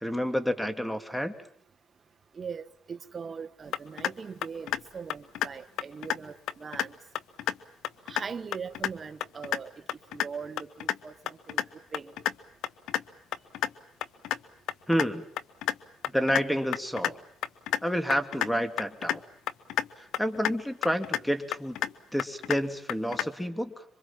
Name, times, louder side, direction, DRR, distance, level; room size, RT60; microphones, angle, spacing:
voice 1, 0.0-1.3 14.9-15.3 16.1-17.2 17.8-19.2 20.0-21.8 22.1-23.8, equal, 5° left, 2.9 m, -29 dB
voice 2, 2.3-6.9 8.1-9.7 10.1-11.6 11.9-12.1, right 6 dB, 40° right, 1.4 m, -40 dB
sound 1, 3.7-4.1 4.4-4.8 5.1-5.5 5.8-6.2 6.5-6.9 7.2-7.6 7.8-8.2 8.5-8.9 9.2-9.6 9.9-10.3 10.6-11.0 11.3-11.7 11.9-12.3 12.6-13.0 13.3-13.7 14.0-14.4 14.7-15.1 15.4-15.8 16.0-16.4 16.7-17.1 17.4-17.8 18.1-18.5 18.8-19.2 19.5-19.9 20.1-20.5 20.8-21.2 21.5-21.9 22.2-22.6 22.9-23.3, left 12 dB, 85° left, 1.0 m, -29 dB
26.5 x 25.0 x 7.6 m
cardioid pair, 90°, 0 cm